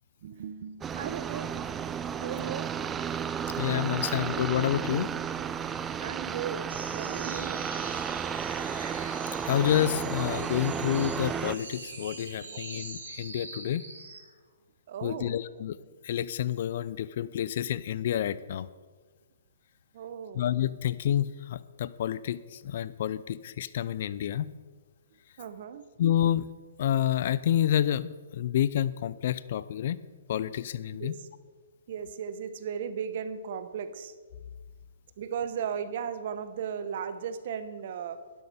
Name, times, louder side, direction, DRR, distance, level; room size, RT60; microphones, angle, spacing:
voice 1, 0.2-1.7 2.2-2.7 6.0-7.7 12.4-12.6 14.9-15.4 19.9-20.5 25.4-25.9 31.0-31.3 31.9-34.1 35.2-38.2, right 7 dB, 55° right, 12 dB, 0.9 m, -36 dB
sound 1, 0.8-11.6, right 7 dB, 15° right, 0.4 m, -33 dB
voice 2, 3.6-5.1 9.4-13.8 15.0-15.8 16.0-18.7 20.3-24.5 26.0-26.5 26.8-30.0 30.3-31.2, left 11 dB, 55° left, 17 dB, 0.5 m, -29 dB
sound 2, 6.7-14.3, right 3 dB, 80° right, 4.1 m, -43 dB
12.0 x 10.5 x 4.4 m, 1.4 s
hypercardioid pair, 135°, 0 cm